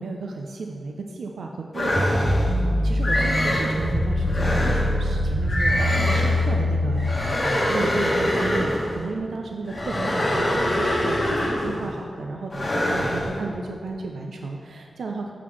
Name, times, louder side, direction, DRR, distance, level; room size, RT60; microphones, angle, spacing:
voice 1, 0.0-15.3, right 3 dB, 90° right, 2 dB, 0.4 m, -33 dB
sound 1, 1.7-2.5 3.0-3.7 4.3-4.9 5.5-6.4 7.0-8.9 9.7-11.8 12.5-13.3, left 1 dB, 35° left, 1.3 m, -24 dB
sound 2, 1.9-7.1, left 1 dB, 50° right, 1.3 m, -23 dB
11.5 x 4.0 x 3.1 m, 2.2 s
wide cardioid pair, 80°, 0 cm